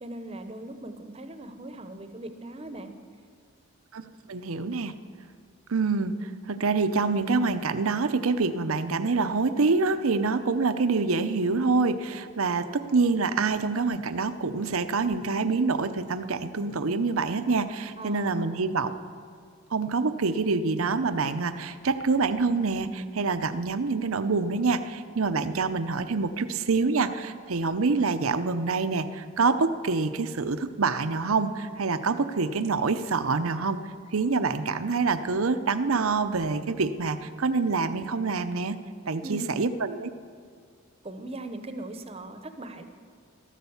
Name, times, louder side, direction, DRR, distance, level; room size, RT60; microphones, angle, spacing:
voice 1, 0.0-2.9 18.0-18.6 39.2-39.8 41.0-42.8, right 1 dB, 30° right, 8 dB, 0.9 m, -39 dB
voice 2, 3.9-4.9 5.7-18.9 19.7-33.8 34.1-38.8 39.1-40.1, right 4 dB, 80° right, 11 dB, 0.7 m, -26 dB
14.0 x 12.5 x 7.1 m, 2.3 s
head